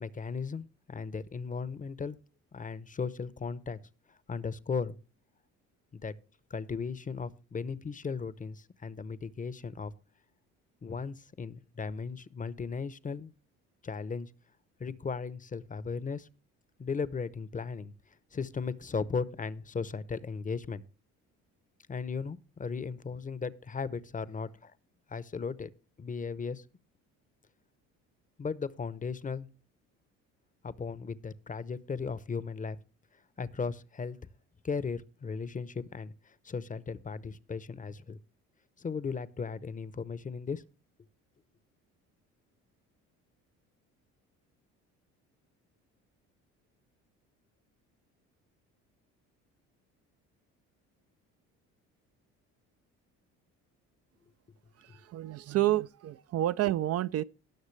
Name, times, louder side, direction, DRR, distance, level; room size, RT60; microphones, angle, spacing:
voice 1, 0.0-2.2 2.5-3.8 4.3-5.0 5.9-6.1 6.5-9.9 10.8-13.3 13.8-14.3 14.8-16.3 16.8-17.9 18.3-20.8 21.9-24.7 25.1-25.7 26.0-26.6 28.4-29.5 30.6-32.8 33.4-34.2 34.6-38.2 38.8-40.6, left 5 dB, 25° left, 0.8 m, -36 dB
voice 2, 54.8-57.2, right 14 dB, 50° right, 0.4 m, -29 dB
18.5 x 6.3 x 3.2 m
supercardioid pair, 80°, 32 cm